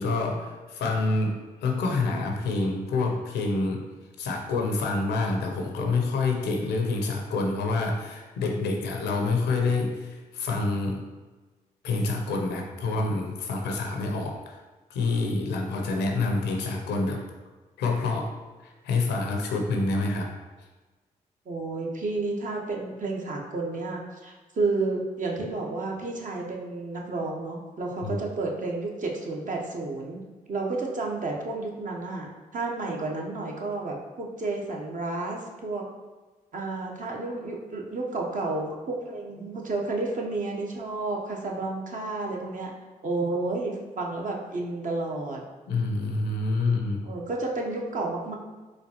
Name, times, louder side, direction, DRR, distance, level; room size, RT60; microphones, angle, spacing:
voice 1, 0.0-3.8 4.2-11.0 11.8-14.6 14.9-17.2 17.8-18.3 18.6-20.3 28.0-28.1 45.7-47.0, left 3 dB, 75° left, 2 dB, 0.6 m, -27 dB
voice 2, 21.5-30.2 30.5-35.9 36.5-42.7 43.0-45.4 47.0-48.4, right 3 dB, 45° right, -1 dB, 0.8 m, -31 dB
4.1 x 2.3 x 2.8 m, 1.3 s
hypercardioid pair, 40°, 18 cm